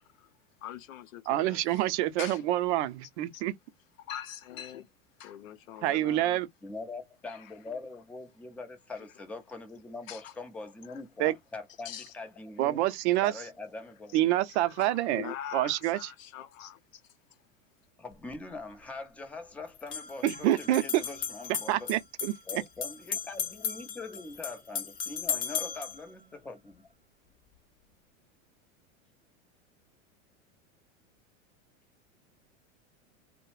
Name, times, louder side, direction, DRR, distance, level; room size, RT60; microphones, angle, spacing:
voice 1, 0.6-1.9 2.2-2.7 3.3-3.4 4.0-4.9 5.2-6.4 7.3-7.5 10.1-10.3 10.9-11.0 11.8-12.1 12.8-12.9 14.5-17.0, left 11 dB, 85° left, 0.6 m, -43 dB
voice 2, 1.3-3.5 5.8-6.5 11.2-11.3 12.6-13.3 14.1-16.0 20.2-21.0 21.7-22.3, right 14 dB, 60° right, 0.5 m, -27 dB
voice 3, 6.6-12.8 13.2-14.2 18.0-21.9 22.5-26.9, left 3 dB, 5° left, 0.3 m, -43 dB
sound 1, 18.1-18.2 19.7-26.0, left 8 dB, 40° left, 0.9 m, -36 dB
2.3 x 2.0 x 3.0 m
hypercardioid pair, 115°, 39 cm